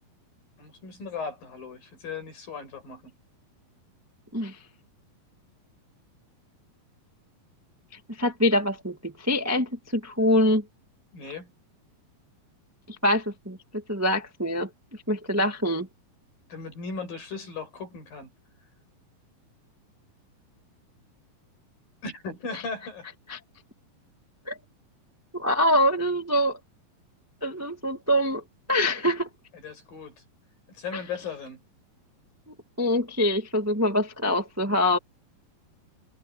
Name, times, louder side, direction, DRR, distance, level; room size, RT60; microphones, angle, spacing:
voice 1, 0.6-3.0 11.1-11.5 16.5-18.3 22.0-23.1 29.6-30.1 30.8-31.6, left 4 dB, 75° left, 8.9 m, -37 dB
voice 2, 8.2-10.6 13.0-14.7 15.1-15.9 23.3-23.4 24.5-24.6 25.3-26.6 27.4-28.4 28.7-29.3 30.9-31.0 32.5-35.0, left 1 dB, 10° right, 0.7 m, -24 dB
omnidirectional pair, 4.1 m